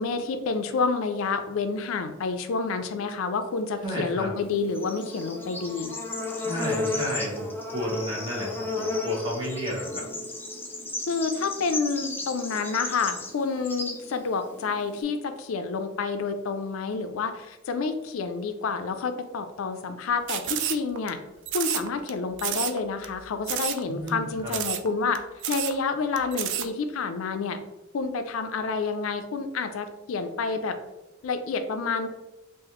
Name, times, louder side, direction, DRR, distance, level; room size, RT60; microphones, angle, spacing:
voice 1, 0.0-5.9 11.1-21.2 21.5-25.2 25.5-27.6 27.9-30.8 31.2-32.1, left 4 dB, 85° left, 8 dB, 0.4 m, -29 dB
voice 2, 3.8-4.3 6.4-10.0 23.9-24.5, equal, 25° right, -4 dB, 1.0 m, -32 dB
Bird / Insect, 4.4-15.0, left 3 dB, 10° left, 0.5 m, -33 dB
sound 1, 20.3-21.1 21.5-22.1 22.4-22.8 23.0-23.1 23.5-23.8 24.1-24.2 24.5-24.9 25.1-25.2 25.4-25.8 26.2-26.7, right 11 dB, 60° right, 0.3 m, -29 dB
3.9 x 2.5 x 3.0 m, 1.0 s
head